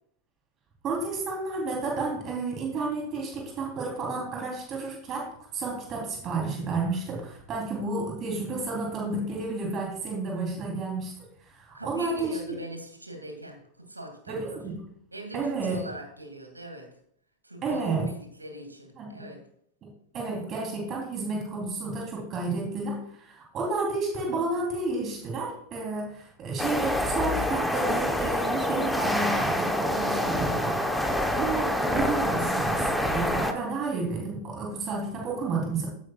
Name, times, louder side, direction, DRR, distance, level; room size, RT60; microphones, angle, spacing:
voice 1, 0.8-11.1 11.5-12.6 14.3-14.8 15.3-15.8 17.6-18.1 19.0-19.3 20.1-35.9, right 3 dB, 30° right, -1 dB, 3.4 m, -31 dB
voice 2, 11.7-14.6 15.1-16.9 17.4-19.4, right 1 dB, 80° right, 3 dB, 2.4 m, -42 dB
sound 1, 26.6-33.5, left 1 dB, ahead, 1.0 m, -26 dB
15.0 x 9.1 x 2.4 m, 0.67 s
figure-of-eight pair, 90°, 0 cm